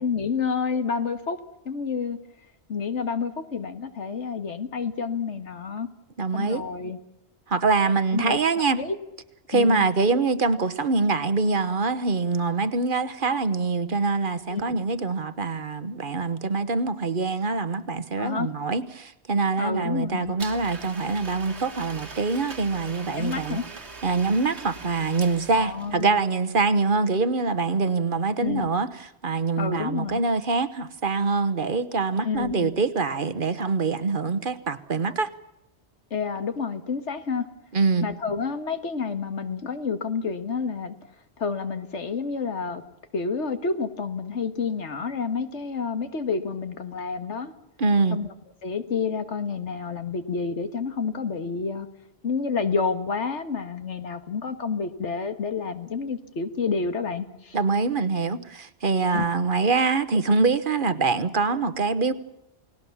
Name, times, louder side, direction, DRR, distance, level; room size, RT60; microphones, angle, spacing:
voice 1, 0.0-1.4 1.7-2.2 2.7-5.9 6.3-7.0 8.1-8.4 8.8-9.0 9.5-9.9 14.5-14.8 18.2-18.5 19.6-20.3 23.1-23.6 25.6-26.2 28.4-28.7 29.6-30.2 32.2-32.8 36.1-37.5 38.0-41.0 41.4-42.8 43.1-47.5 48.1-48.3 48.6-51.9 52.2-57.6 59.1-59.3, left 5 dB, 90° left, 1.9 m, -29 dB
voice 2, 6.2-6.6 7.5-8.8 9.5-23.6 24.0-28.9 29.2-35.3 37.7-38.1 47.8-48.2 57.5-62.1, right 4 dB, 50° right, 1.2 m, -24 dB
Domestic sounds home sounds, 20.4-26.0, right 3 dB, 75° right, 2.3 m, -41 dB
29.0 x 19.0 x 7.2 m
omnidirectional pair, 1.1 m